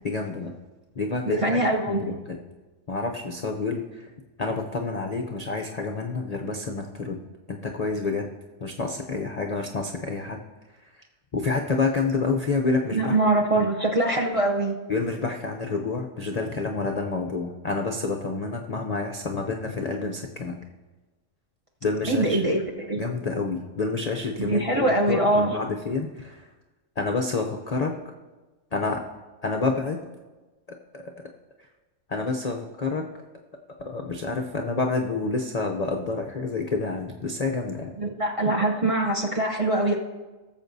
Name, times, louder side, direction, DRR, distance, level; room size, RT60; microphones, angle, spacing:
voice 1, 0.0-0.5 0.9-2.4 2.9-4.1 4.4-7.2 7.5-8.3 8.6-10.4 10.8-11.0 11.3-13.1 13.6-13.7 14.9-20.6 21.8-22.5 23.0-26.5 27.0-27.9 28.7-29.0 29.4-30.0 30.9-31.0 32.1-33.1 33.8-37.9, left 3 dB, 50° left, 2 dB, 0.4 m, -28 dB
voice 2, 1.3-2.2 12.9-14.8 22.1-22.6 22.9-23.1 24.4-25.6 38.0-40.0, right 1 dB, 30° right, 0 dB, 0.6 m, -23 dB
18.5 x 7.3 x 2.6 m, 1.2 s
omnidirectional pair, 1.5 m